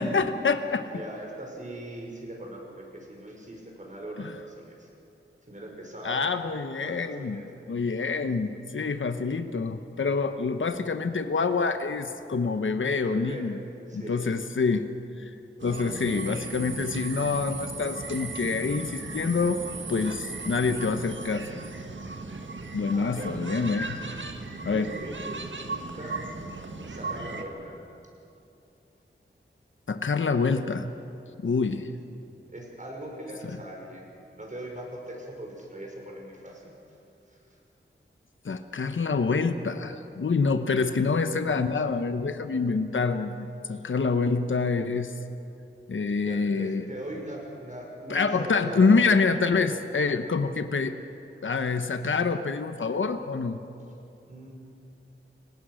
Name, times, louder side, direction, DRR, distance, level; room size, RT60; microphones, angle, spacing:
voice 1, 0.0-0.9 6.0-7.4 7.7-13.6 13.9-14.9 15.2-15.3 15.6-19.6 19.9-21.6 22.7-24.0 24.6-24.9 29.9-30.9 31.4-31.9 38.4-45.1 45.9-46.8 48.1-50.9 51.4-53.6, left 4 dB, 70° left, 8 dB, 1.0 m, -26 dB
voice 2, 0.8-4.9 5.5-6.3 6.8-7.4 13.1-13.5 13.9-14.4 15.6-16.7 22.9-23.3 24.7-26.2 26.9-27.8 31.6-31.7 32.5-34.1 34.3-36.7 37.3-37.4 46.2-49.0 54.2-54.5, right 1 dB, 35° right, -1 dB, 5.8 m, -40 dB
sound 1, 15.6-27.4, right 3 dB, 65° right, 1.7 m, -37 dB
29.5 x 18.0 x 6.4 m, 2.8 s
wide cardioid pair, 90°, 21 cm